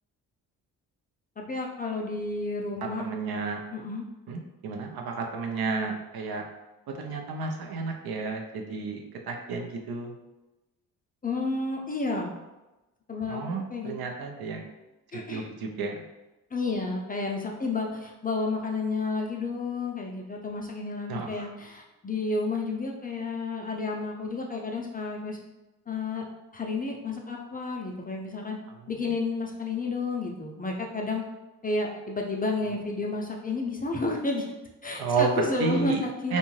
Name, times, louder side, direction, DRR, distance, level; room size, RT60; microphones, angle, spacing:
voice 1, 1.4-3.1 3.7-4.0 11.2-12.3 13.1-13.4 13.7-13.9 15.1-15.5 16.5-25.4 25.9-26.2 26.5-28.6 28.9-31.2 31.6-34.5 34.8-36.3, left 3 dB, 20° left, 0 dB, 0.4 m, -31 dB
voice 2, 2.8-3.6 4.3-6.5 6.9-10.2 13.3-14.7 15.1-16.0 21.1-21.5 28.7-28.9 32.7-32.8 35.0-36.0 36.3-36.4, right 4 dB, 65° right, 2 dB, 0.6 m, -31 dB
2.6 x 2.2 x 3.1 m, 1.0 s
supercardioid pair, 55°, 41 cm